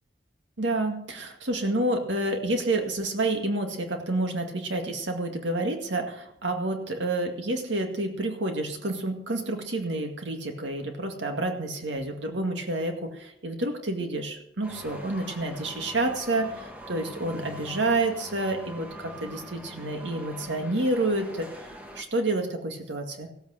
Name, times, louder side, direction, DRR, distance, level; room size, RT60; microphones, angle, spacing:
voice 1, 0.6-23.3, right 2 dB, 75° right, 4 dB, 2.1 m, -29 dB
sound 1, 14.6-22.0, equal, 10° right, 1.4 m, -43 dB
16.0 x 8.4 x 6.4 m, 0.77 s
head